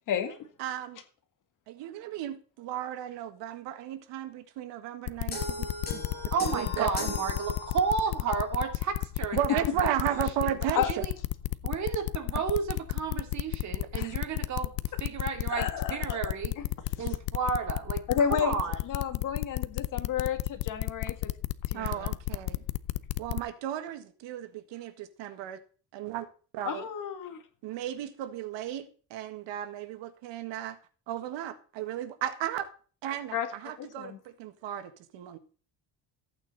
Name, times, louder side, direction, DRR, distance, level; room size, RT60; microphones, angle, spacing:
voice 1, 0.1-0.4 10.8-10.9 14.0-14.1 15.5-16.7 18.1-18.6 18.8-21.3 21.7-22.2 26.7-27.4 33.3-33.5 33.8-34.2, left 8 dB, 45° left, 7 dB, 1.9 m, -31 dB
voice 2, 0.6-1.0 1.7-6.0 6.5-7.2 9.3-11.1 21.7-22.6 23.2-25.6 25.9-26.3 26.5-26.9 27.6-30.8 31.1-32.7 33.0-35.4, right 11 dB, 85° right, 9 dB, 1.8 m, -35 dB
sound 1, 5.1-23.4, left 19 dB, 80° left, 0.7 m, -31 dB
sound 2, 5.3-8.2, left 2 dB, 20° left, 5.5 m, -37 dB
voice 3, 6.3-9.9 10.9-11.1 11.6-14.7 15.0-16.5 17.0-18.0 18.3-18.8, right 5 dB, 40° right, 5 dB, 2.5 m, -32 dB
14.5 x 9.0 x 4.1 m, 0.39 s
cardioid pair, 180°, 43 cm